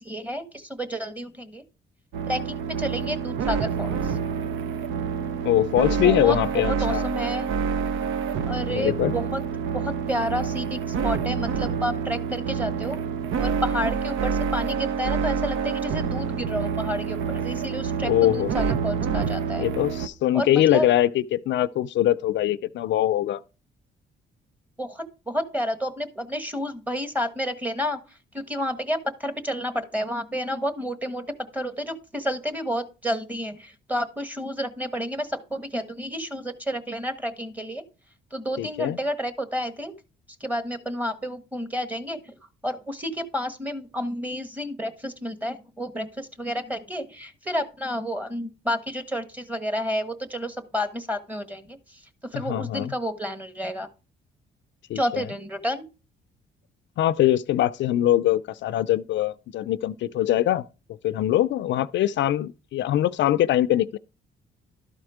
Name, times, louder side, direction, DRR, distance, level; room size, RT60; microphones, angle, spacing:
voice 1, 0.0-1.6 2.3-4.1 6.0-6.4 6.7-7.5 8.5-9.4 9.7-13.0 13.4-18.1 18.5-19.7 20.3-20.9 24.8-28.0 28.3-31.2 31.5-37.8 38.3-39.9 40.4-42.2 42.6-51.8 52.3-53.9 54.9-55.9, equal, 10° right, 1.3 m, -30 dB
sound 1, 2.1-20.1, right 6 dB, 85° right, 0.7 m, -27 dB
voice 2, 5.4-7.1 8.7-9.2 18.0-18.7 19.6-23.4 38.6-39.0 52.3-52.9 54.9-55.3 57.0-60.6 61.0-64.0, left 12 dB, 70° left, 0.4 m, -23 dB
12.5 x 4.4 x 4.9 m
cardioid pair, 90°, 20 cm